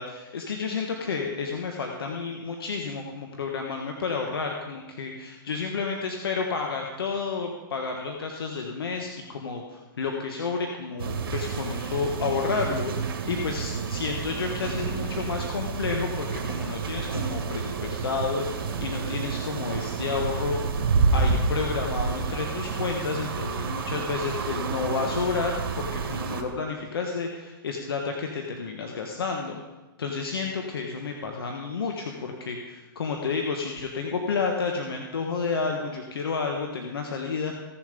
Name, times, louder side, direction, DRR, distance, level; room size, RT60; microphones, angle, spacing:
voice 1, 0.0-20.8 21.1-29.6 30.0-37.6, left 5 dB, 85° left, 2 dB, 1.4 m, -31 dB
sound 1, 11.0-26.4, right 5 dB, 80° right, 1.9 m, -29 dB
16.0 x 7.3 x 5.2 m, 1.1 s
hypercardioid pair, 135°, 12 cm